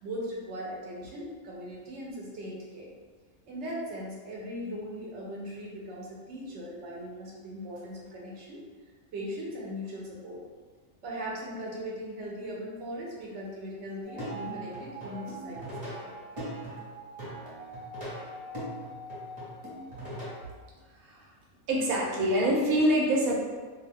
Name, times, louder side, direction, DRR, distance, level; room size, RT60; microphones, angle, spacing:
voice 1, 0.0-2.9 3.5-8.6 9.1-10.4 11.0-16.1, equal, 60° right, -3 dB, 0.9 m, -39 dB
Plucked string instrument, 14.0-20.4, right 1 dB, 35° right, 1.0 m, -40 dB
voice 2, 21.0-21.3 21.7-23.4, right 1 dB, 85° right, -3 dB, 1.2 m, -25 dB
2.6 x 2.3 x 3.4 m, 1.4 s
omnidirectional pair, 1.4 m